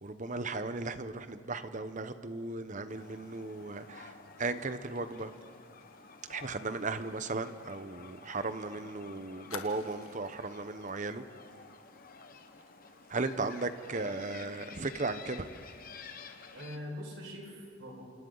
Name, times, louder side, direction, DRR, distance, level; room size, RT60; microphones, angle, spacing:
voice 1, 0.0-4.1 4.4-5.3 6.3-11.2 13.1-15.4, right 3 dB, 35° right, 11 dB, 0.9 m, -36 dB
sound 1, 2.9-16.8, left 5 dB, 40° left, 1.2 m, -52 dB
Fire, 5.2-8.6 8.9-9.0 9.5-10.5 10.9-11.0 11.4-11.6, left 5 dB, 80° left, 1.7 m, -51 dB
voice 2, 16.5-18.0, equal, 60° right, 0 dB, 5.2 m, -43 dB
29.0 x 27.0 x 4.0 m, 2.2 s
head